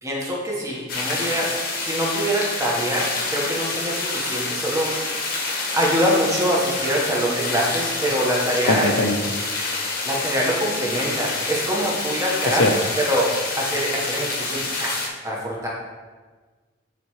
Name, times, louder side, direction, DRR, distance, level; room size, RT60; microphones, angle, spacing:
voice 1, 0.0-5.0 5.7-8.9 10.0-15.7, equal, 15° right, -4 dB, 1.2 m, -24 dB
sound 1, 0.9-15.1, left 3 dB, 50° left, 1.0 m, -27 dB
voice 2, 8.7-9.2 12.6-12.8, left 2 dB, 80° left, 6 dB, 0.7 m, -20 dB
9.1 x 4.3 x 3.1 m, 1.4 s
head